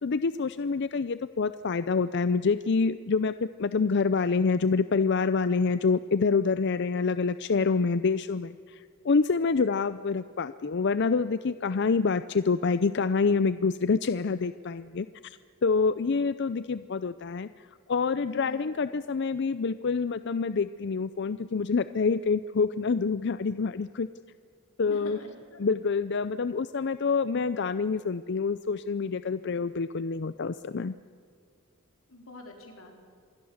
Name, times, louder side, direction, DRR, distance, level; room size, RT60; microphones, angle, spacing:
voice 1, 0.0-17.5 17.9-24.1 24.8-25.2 25.6-30.9, left 4 dB, 55° left, 14 dB, 0.5 m, -27 dB
voice 2, 18.3-18.7 24.9-25.6 32.1-32.9, left 1 dB, 90° left, 2 dB, 4.6 m, -45 dB
27.0 x 21.0 x 7.2 m, 2.3 s
head